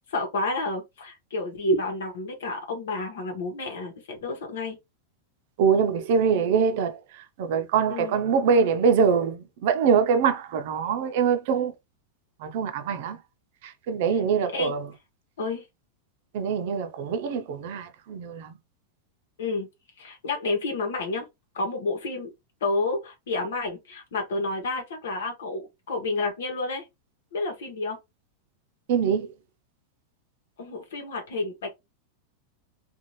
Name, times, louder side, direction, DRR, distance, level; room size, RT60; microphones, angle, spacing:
voice 1, 0.1-4.8 7.9-8.2 14.1-14.2 14.5-14.8 15.4-15.6 19.4-19.7 20.0-21.3 21.5-22.3 22.6-26.9 27.3-28.0 30.6-31.7, left 2 dB, 90° left, 1.0 m, -30 dB
voice 2, 5.6-7.0 7.4-11.7 12.4-13.2 13.6-14.9 16.3-18.5 28.9-29.3, right 6 dB, 60° right, 0.6 m, -24 dB
2.7 x 2.3 x 3.0 m
supercardioid pair, 150°, 0 cm